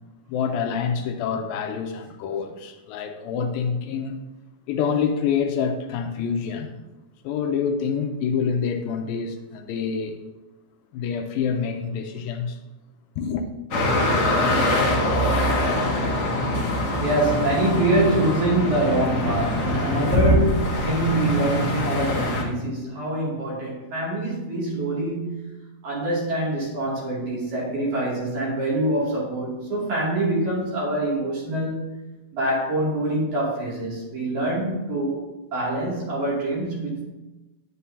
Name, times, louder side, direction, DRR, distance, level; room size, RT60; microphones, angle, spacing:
voice 1, 0.3-4.2 4.7-6.8 7.2-10.2 10.9-12.6 13.2-13.5, left 6 dB, 80° left, 2.4 m, -26 dB
sound 1, 13.7-22.4, left 1 dB, 50° left, 1.4 m, -23 dB
voice 2, 17.0-25.5 25.8-31.9 32.3-37.0, right 1 dB, 55° right, 3.8 m, -25 dB
10.0 x 9.5 x 2.8 m
omnidirectional pair, 4.2 m